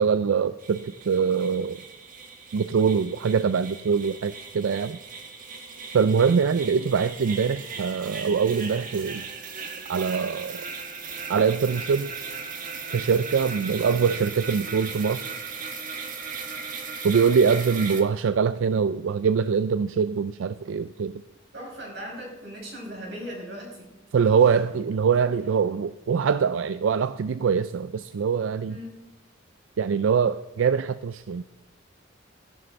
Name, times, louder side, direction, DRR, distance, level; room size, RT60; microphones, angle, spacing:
voice 1, 0.0-1.8 2.5-5.0 5.9-9.3 9.9-10.6 11.3-12.1 12.9-15.3 17.0-21.2 24.1-28.7 29.8-31.4, right 6 dB, 85° right, 13 dB, 0.4 m, -23 dB
sound 1, 0.6-18.0, right 5 dB, 45° right, 1.4 m, -38 dB
voice 2, 21.5-24.0 24.3-24.4 28.7-29.0, equal, 60° right, -2 dB, 5.5 m, -39 dB
14.5 x 11.5 x 4.0 m, 0.98 s
head